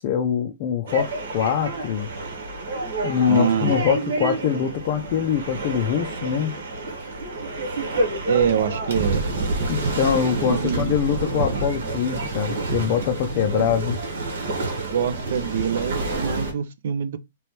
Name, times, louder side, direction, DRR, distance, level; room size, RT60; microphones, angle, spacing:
voice 1, 0.0-2.1 3.0-6.5 9.7-14.0, left 8 dB, 35° left, 0.4 m, -23 dB
sound 1, 0.9-16.5, right 2 dB, 75° right, 1.3 m, -28 dB
voice 2, 3.3-3.7 8.3-9.2 10.5-11.0 13.5-13.6 14.8-17.2, right 8 dB, 60° right, 0.5 m, -25 dB
3.1 x 3.0 x 3.1 m
hypercardioid pair, 170°, 0 cm